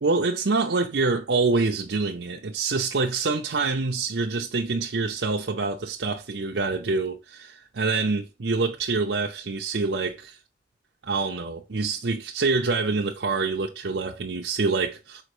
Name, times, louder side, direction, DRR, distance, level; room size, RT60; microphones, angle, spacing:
voice 1, 0.0-10.4 11.0-15.2, right 3 dB, 75° right, 0.7 m, -26 dB
5.6 x 4.5 x 4.9 m
head